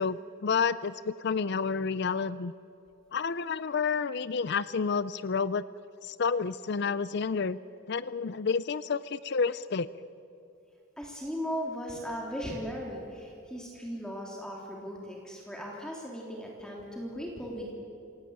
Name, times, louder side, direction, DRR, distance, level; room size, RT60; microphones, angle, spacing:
voice 1, 0.0-2.5 3.1-5.6 6.0-7.6 7.9-9.9, left 5 dB, 55° left, 16 dB, 0.5 m, -30 dB
voice 2, 11.0-17.7, equal, 5° left, -2 dB, 3.3 m, -37 dB
27.5 x 18.0 x 8.8 m, 2.6 s
head